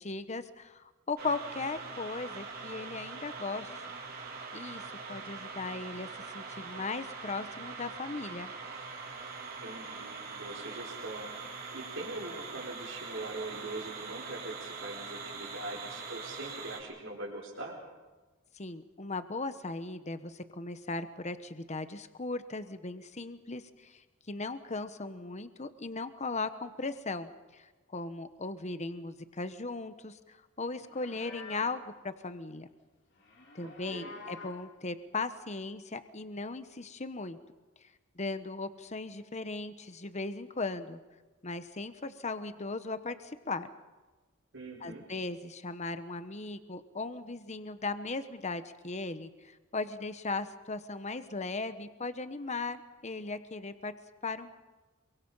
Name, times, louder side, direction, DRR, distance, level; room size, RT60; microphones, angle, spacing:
voice 1, 0.0-3.7 4.5-4.8 5.1-6.1 6.3-8.5 18.5-24.0 24.3-32.7 33.5-37.4 38.2-41.0 41.4-43.7 44.8-53.9 54.2-54.5, left 3 dB, 35° left, 11 dB, 1.1 m, -38 dB
sound 1, 1.2-16.8, right 4 dB, 50° right, 4.2 m, -43 dB
voice 2, 9.6-17.8 33.9-34.1 44.5-45.1, right 2 dB, 70° right, -3 dB, 4.7 m, -42 dB
Livestock farm animals working animals, 30.8-31.9 33.2-34.7, left 4 dB, 60° left, 3.5 m, -48 dB
27.5 x 24.0 x 5.6 m, 1.2 s
head